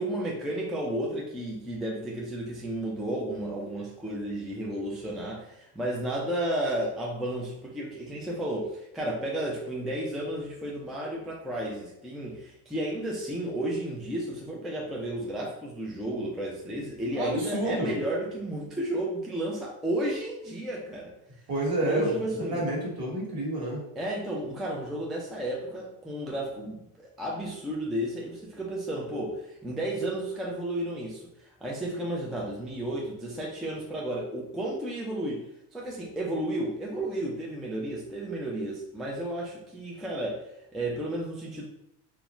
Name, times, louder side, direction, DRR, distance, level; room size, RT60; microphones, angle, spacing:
voice 1, 0.0-21.1 21.8-22.6 24.0-31.3 31.6-35.4 35.7-41.7, right 1 dB, ahead, -4 dB, 0.4 m, -32 dB
voice 2, 17.1-17.9 21.5-22.2 22.5-23.8, right 1 dB, 50° right, -2 dB, 1.2 m, -29 dB
2.4 x 2.2 x 3.0 m, 0.81 s
supercardioid pair, 80°, 47 cm